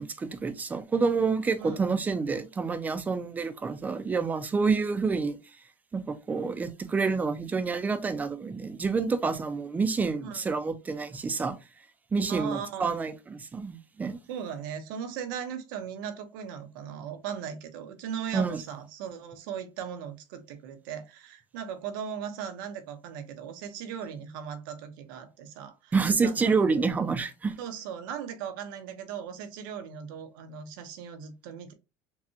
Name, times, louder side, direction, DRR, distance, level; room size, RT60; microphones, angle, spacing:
voice 1, 0.0-5.4 5.9-11.6 12.1-14.2 18.3-18.6 25.9-27.5, right 4 dB, 15° right, 0.5 m, -28 dB
voice 2, 12.3-13.1 14.3-25.9 26.2-26.6 27.6-31.7, right 8 dB, 85° right, 1.0 m, -38 dB
5.8 x 2.3 x 2.8 m
cardioid pair, 145°, 11 cm